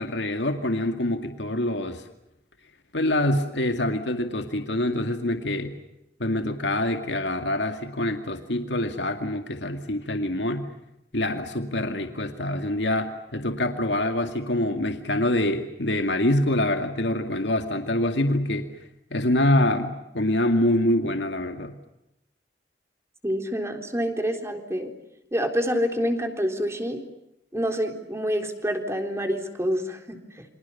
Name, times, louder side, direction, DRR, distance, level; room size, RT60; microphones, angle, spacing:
voice 1, 0.0-2.0 2.9-5.7 6.2-10.7 11.1-18.7 19.1-21.7, left 1 dB, 80° left, 6 dB, 2.2 m, -25 dB
voice 2, 23.2-24.9 25.3-27.0 27.5-30.5, equal, 15° right, 5 dB, 3.8 m, -27 dB
29.0 x 26.0 x 7.2 m, 0.89 s
head